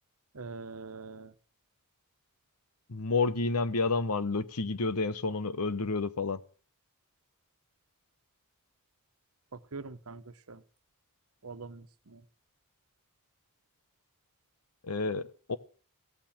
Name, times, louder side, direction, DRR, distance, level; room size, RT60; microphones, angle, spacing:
voice 1, 0.3-1.3 9.5-10.2 10.5-10.6 11.4-12.2, right 4 dB, 70° right, 1.2 m, -43 dB
voice 2, 2.9-6.4 14.8-15.6, left 3 dB, 85° left, 1.0 m, -30 dB
16.0 x 8.9 x 8.8 m
head